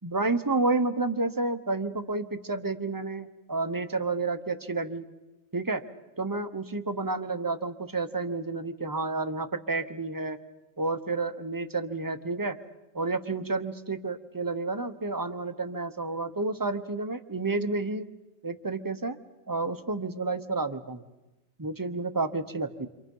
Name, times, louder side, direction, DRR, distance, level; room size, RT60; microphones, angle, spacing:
voice 1, 0.0-5.0 5.5-5.8 6.2-10.4 10.8-12.6 12.9-18.1 18.4-19.2 19.5-21.0 21.6-22.9, right 3 dB, 20° right, 10 dB, 0.9 m, -30 dB
28.5 x 26.5 x 5.5 m, 1.0 s
omnidirectional pair, 1.4 m